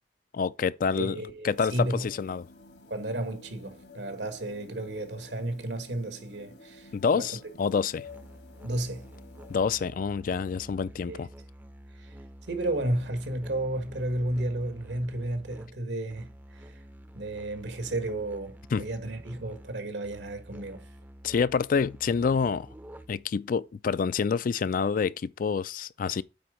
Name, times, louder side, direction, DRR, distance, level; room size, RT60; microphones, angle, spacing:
voice 1, 0.3-1.2 1.4-2.5 6.9-8.1 9.5-11.3 18.7-18.8 21.2-22.7 23.1-26.2, left 5 dB, 50° left, 0.3 m, -27 dB
voice 2, 1.0-2.1 2.9-7.4 8.6-9.1 11.1-11.2 12.0-12.2 12.5-16.8 17.1-20.9, right 1 dB, 80° right, 1.6 m, -33 dB
sound 1, 1.5-9.6, left 3 dB, 70° left, 1.4 m, -52 dB
Musical instrument, 8.0-23.4, right 1 dB, 10° right, 0.5 m, -49 dB
8.9 x 4.2 x 5.1 m
head